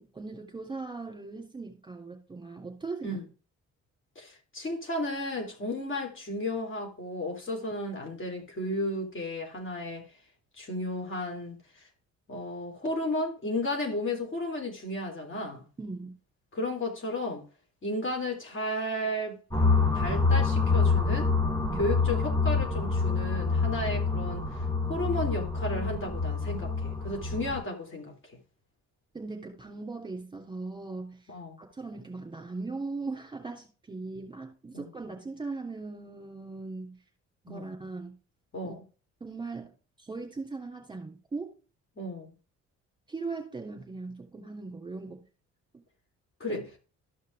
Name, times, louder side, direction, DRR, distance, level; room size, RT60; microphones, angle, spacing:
voice 1, 0.0-3.2 15.8-16.1 21.6-21.9 29.1-31.2 31.6-37.0 37.4-38.1 38.6-38.8 39.2-41.5 43.1-45.2 45.7-45.8 46.5-46.6, right 3 dB, 15° right, 3.0 m, -39 dB
voice 2, 4.2-10.1 10.6-11.6 12.3-15.6 16.5-17.5 17.8-19.4 19.9-21.3 21.8-28.1 31.3-31.6 34.7-34.9 37.5-37.7 38.5-38.8 42.0-42.3 46.4-46.6, left 1 dB, 40° left, 3.7 m, -33 dB
sound 1, 19.5-27.6, left 4 dB, 15° left, 3.1 m, -27 dB
13.5 x 5.6 x 3.5 m
cardioid pair, 90°, 30 cm